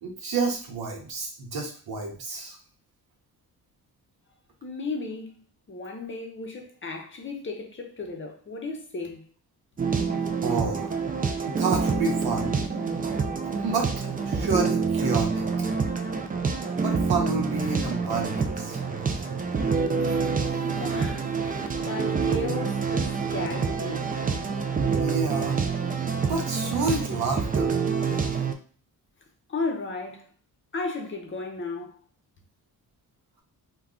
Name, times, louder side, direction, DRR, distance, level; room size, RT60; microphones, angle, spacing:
voice 1, 0.0-2.6 10.4-11.0 11.4-12.6 13.5-13.9 14.3-15.4 16.8-18.8 19.6-20.3 20.9-21.1 24.8-25.6 26.3-27.8, right 4 dB, 70° right, 0.9 m, -30 dB
voice 2, 4.6-5.3 5.7-9.2 20.6-24.1 29.5-30.3 30.7-32.0, left 3 dB, 30° left, 0.7 m, -34 dB
sound 1, 9.8-28.5, right 5 dB, 25° right, 0.4 m, -27 dB
2.3 x 2.2 x 3.6 m
cardioid pair, 85°, 38 cm